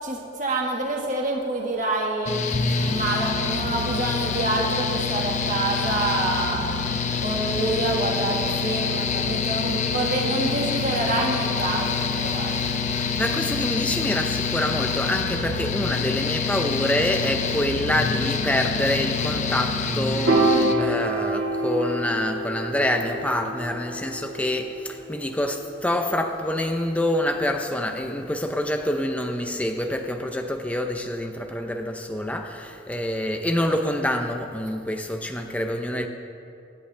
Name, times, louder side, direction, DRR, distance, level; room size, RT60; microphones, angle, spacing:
voice 1, 0.0-2.4 2.9-6.6 7.2-12.5, right 2 dB, 40° right, -2 dB, 1.6 m, -27 dB
Mechanical fan, 2.3-20.7, left 5 dB, 35° left, 0.7 m, -26 dB
voice 2, 13.0-36.1, left 1 dB, 5° left, 4 dB, 0.7 m, -26 dB
Piano, 20.3-26.6, right 1 dB, 75° right, 2.0 m, -27 dB
24.5 x 11.0 x 3.4 m, 2.6 s
head